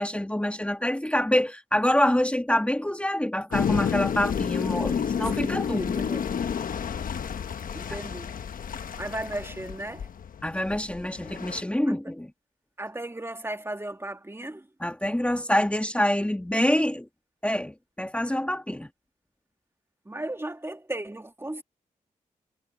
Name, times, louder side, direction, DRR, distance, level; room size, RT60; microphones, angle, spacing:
voice 1, 0.0-6.0 10.4-12.3 14.8-17.1 17.4-18.9, left 1 dB, 10° left, 1.8 m, -26 dB
sound 1, 3.5-11.6, left 7 dB, 75° left, 1.2 m, -30 dB
voice 2, 5.4-6.3 7.7-8.3 9.0-10.1 11.9-12.1 12.8-14.7 20.1-21.6, right 1 dB, 15° right, 2.3 m, -36 dB
cardioid pair, 60°, 14 cm